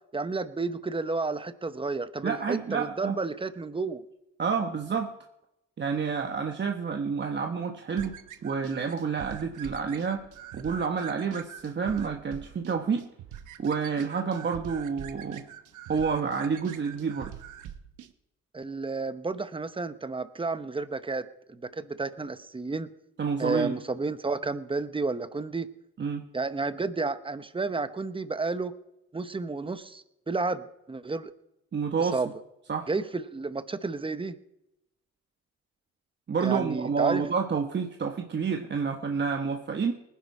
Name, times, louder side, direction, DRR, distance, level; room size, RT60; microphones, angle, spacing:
voice 1, 0.1-4.0 18.5-22.9 23.4-25.7 26.3-28.7 29.1-31.3 32.0-32.3 32.9-34.4 36.4-37.2, right 3 dB, 15° right, 12 dB, 0.9 m, -31 dB
voice 2, 2.2-3.2 4.4-5.1 5.8-8.1 8.4-10.2 10.5-13.1 13.6-15.4 15.9-17.3 23.2-23.7 26.0-26.3 31.7-32.2 32.7-32.9 36.3-39.9, right 5 dB, 35° right, 3 dB, 1.1 m, -29 dB
sound 1, 8.0-18.1, right 10 dB, 80° right, 1.1 m, -44 dB
19.5 x 10.5 x 4.7 m, 0.89 s
cardioid pair, 90°, 30 cm